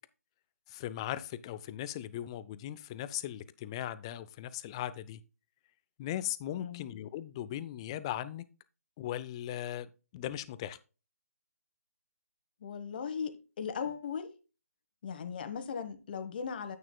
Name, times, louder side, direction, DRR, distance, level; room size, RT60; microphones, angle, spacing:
voice 1, 0.7-5.2 6.0-8.4 9.0-10.8, left 12 dB, 20° left, 0.5 m, -38 dB
voice 2, 12.6-14.3 15.0-16.8, left 6 dB, 35° left, 1.2 m, -38 dB
9.6 x 8.8 x 2.2 m
figure-of-eight pair, 145°, 8 cm